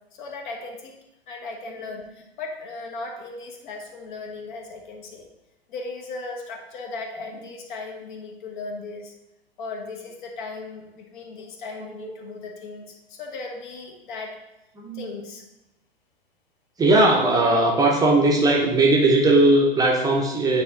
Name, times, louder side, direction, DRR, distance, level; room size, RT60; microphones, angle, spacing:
voice 1, 0.1-0.9 1.3-5.3 5.7-9.1 9.6-14.4 14.9-15.4, left 3 dB, 50° left, 2 dB, 1.2 m, -37 dB
voice 2, 11.8-12.1 14.7-15.1 16.8-20.6, right 2 dB, 10° right, -1 dB, 0.8 m, -19 dB
8.9 x 3.2 x 3.8 m, 0.93 s
figure-of-eight pair, 100°, 31 cm